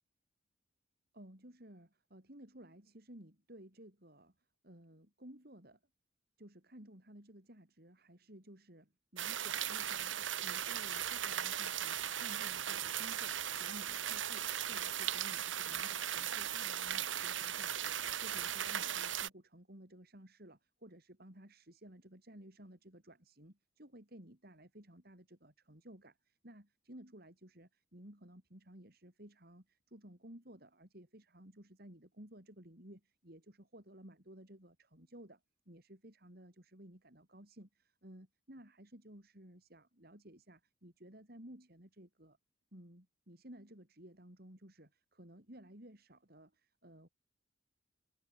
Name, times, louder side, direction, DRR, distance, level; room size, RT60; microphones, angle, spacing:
voice 1, 1.1-4.3 4.6-5.8 6.4-17.9 18.2-42.4 42.7-47.1, right 1 dB, 50° right, 5.0 m, -56 dB
sound 1, 9.2-19.3, right 10 dB, 75° right, 1.9 m, -38 dB
head